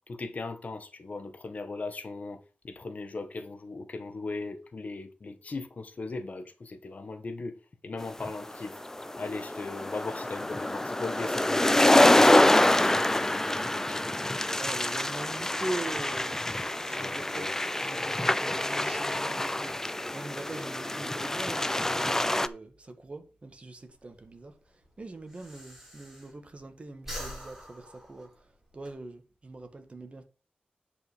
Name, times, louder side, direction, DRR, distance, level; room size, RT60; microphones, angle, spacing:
voice 1, 0.1-8.8 9.1-14.1 16.9-17.5, left 3 dB, 50° left, 1.6 m, -38 dB
sound 1, 8.2-22.5, left 1 dB, 15° left, 0.6 m, -26 dB
voice 2, 14.6-30.2, right 2 dB, 40° right, 1.8 m, -42 dB
Breathing, 23.9-26.6 26.9-28.9, equal, 15° right, 5.7 m, -44 dB
9.5 x 5.5 x 5.1 m
wide cardioid pair, 110°, 3 cm